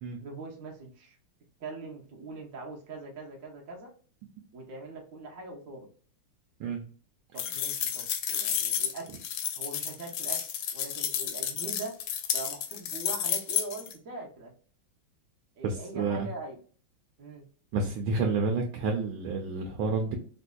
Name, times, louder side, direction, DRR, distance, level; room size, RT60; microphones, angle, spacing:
voice 1, 0.2-1.2 1.6-3.9 4.5-5.9 7.3-9.3 9.6-10.4 10.7-11.9 12.3-14.5 15.6-16.6 17.2-17.4, right 3 dB, 55° right, -1 dB, 0.9 m, -42 dB
sound 1, 7.4-13.9, left 9 dB, 75° left, 1.1 m, -31 dB
voice 2, 15.6-16.3 17.7-20.2, right 4 dB, 75° right, 3 dB, 1.4 m, -29 dB
4.0 x 2.6 x 2.2 m, 0.44 s
omnidirectional pair, 2.3 m